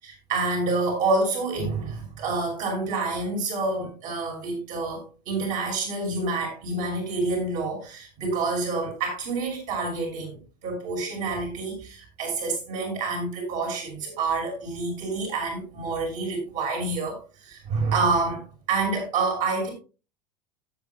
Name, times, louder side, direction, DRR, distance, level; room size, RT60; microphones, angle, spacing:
voice 1, 0.0-10.4 10.6-19.7, right 3 dB, 40° right, 0 dB, 5.9 m, -28 dB
16.5 x 8.7 x 2.4 m, 0.33 s
figure-of-eight pair, 85°, 21 cm